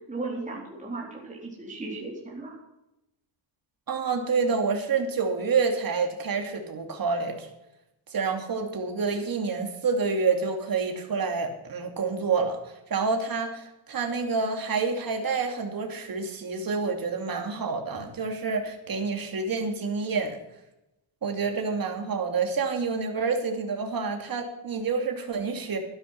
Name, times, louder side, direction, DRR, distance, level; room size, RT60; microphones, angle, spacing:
voice 1, 0.1-2.5, right 3 dB, 15° right, -3 dB, 4.1 m, -36 dB
voice 2, 3.9-7.5 8.1-20.4 21.2-25.8, right 4 dB, 45° right, 3 dB, 2.7 m, -28 dB
13.0 x 12.0 x 5.9 m, 0.88 s
cardioid pair, 140°, 48 cm